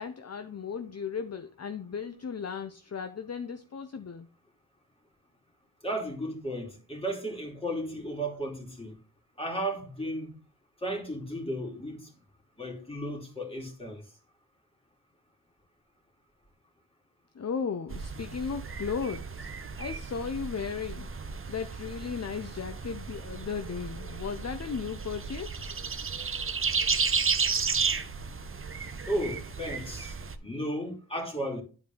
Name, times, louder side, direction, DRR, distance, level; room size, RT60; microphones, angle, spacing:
voice 1, 0.0-4.3 17.3-19.5 19.8-25.7, left 6 dB, 45° left, 0.7 m, -36 dB
voice 2, 5.8-9.0 9.4-10.3 10.8-12.1 12.6-14.0 29.1-31.6, right 1 dB, 15° left, 2.9 m, -34 dB
sound 1, 17.9-30.4, right 5 dB, 35° right, 0.8 m, -33 dB
11.0 x 4.5 x 3.8 m
wide cardioid pair, 95°, 37 cm